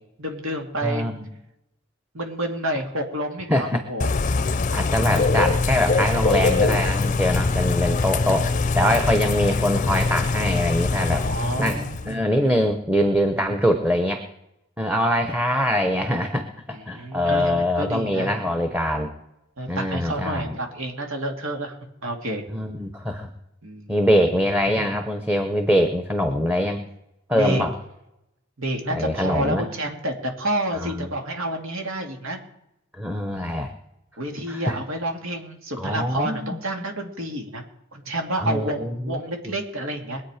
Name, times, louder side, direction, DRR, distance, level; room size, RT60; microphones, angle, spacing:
voice 1, 0.2-1.1 2.1-4.1 11.1-12.3 16.7-18.3 19.6-21.8 22.0-22.4 23.6-24.0 27.3-27.6 28.6-32.4 34.2-37.6 37.9-40.2, right 1 dB, 90° right, 3 dB, 2.5 m, -29 dB
voice 2, 0.8-1.3 3.5-3.8 4.7-11.2 11.6-14.2 14.8-19.1 19.7-20.6 22.5-23.3 23.9-26.9 27.3-27.7 28.9-29.6 30.8-31.1 33.0-33.7 34.5-34.8 35.8-36.6 38.4-39.2 39.4-39.5, equal, 10° right, 5 dB, 0.9 m, -23 dB
Bird / Rain, 4.0-12.1, left 3 dB, 40° left, 0.5 m, -23 dB
22.5 x 8.7 x 5.0 m, 0.87 s
head